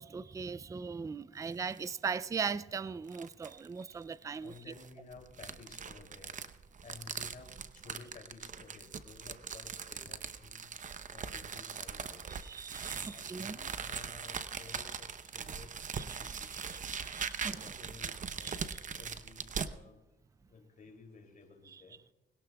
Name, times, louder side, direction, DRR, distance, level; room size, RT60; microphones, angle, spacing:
voice 1, 0.0-4.5 12.3-13.6 16.0-16.2 16.5-17.6 18.4-18.8, right 5 dB, 15° right, 0.4 m, -39 dB
sound 1, 1.4-2.0 2.4-2.5 3.1-3.7 4.5-19.7, right 6 dB, 40° right, 0.8 m, -41 dB
voice 2, 4.4-6.4 6.8-10.7 11.1-12.3 12.9-16.8 17.4-20.0 20.4-22.0, left 4 dB, 45° left, 2.9 m, -54 dB
21.0 x 18.0 x 2.3 m
cardioid pair, 90°, 20 cm